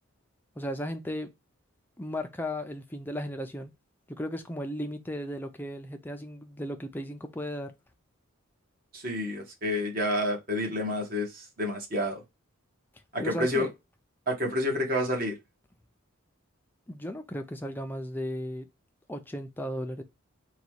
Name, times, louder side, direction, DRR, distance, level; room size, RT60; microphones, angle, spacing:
voice 1, 0.6-1.3 2.0-3.7 4.1-7.7 13.2-13.7 16.9-18.7 19.1-20.0, equal, 10° left, 0.5 m, -35 dB
voice 2, 8.9-12.2 13.1-13.7 14.3-15.3, left 1 dB, 40° right, 1.3 m, -29 dB
4.0 x 2.3 x 4.6 m
head